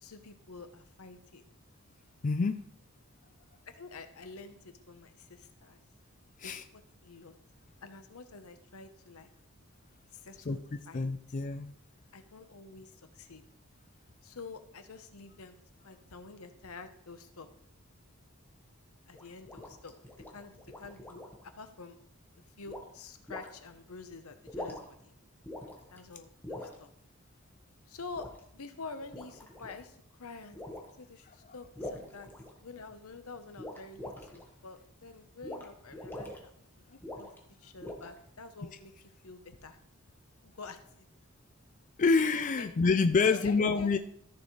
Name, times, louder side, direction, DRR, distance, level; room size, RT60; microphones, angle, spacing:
voice 1, 0.0-1.4 3.7-5.8 6.4-7.3 7.8-9.3 10.1-11.1 12.1-13.4 14.2-15.6 15.8-17.5 19.1-19.9 20.3-22.0 22.6-25.1 25.9-26.9 27.9-30.6 31.0-32.3 32.6-36.5 36.8-37.3 37.6-38.9 39.2-39.8 40.4-41.1 42.6-42.7 43.3-43.9, left 4 dB, 85° left, 9 dB, 1.0 m, -48 dB
voice 2, 2.2-2.6 6.4-6.6 10.5-10.6 10.9-11.7 42.0-44.0, left 4 dB, 35° left, 8 dB, 0.4 m, -27 dB
sound 1, 19.1-21.4 22.7-22.9 23.3-23.5 24.4-25.0 25.5-26.0 26.4-26.8 28.1-28.4 29.0-29.8 30.5-30.9 31.8-32.9 33.6-34.4 35.4-35.7 35.9-36.4 37.0-37.4 37.8-38.3, left 1 dB, 10° left, 1.4 m, -43 dB
14.0 x 6.6 x 3.2 m, 0.69 s
head